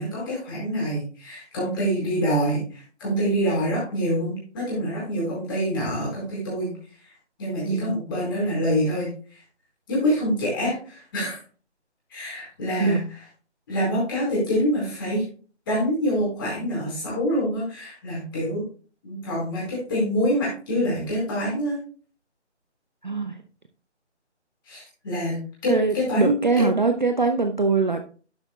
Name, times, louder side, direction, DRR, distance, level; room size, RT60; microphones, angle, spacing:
voice 1, 0.0-6.7 7.4-9.1 9.9-11.4 12.1-13.0 13.7-15.2 15.7-18.6 19.0-21.8 24.7-26.6, equal, 20° left, -6 dB, 4.6 m, -26 dB
voice 2, 7.6-8.0 12.8-13.0 23.0-23.4 25.7-28.0, right 4 dB, 40° right, 6 dB, 0.5 m, -22 dB
11.0 x 7.9 x 2.3 m, 0.38 s
figure-of-eight pair, 170°, 35 cm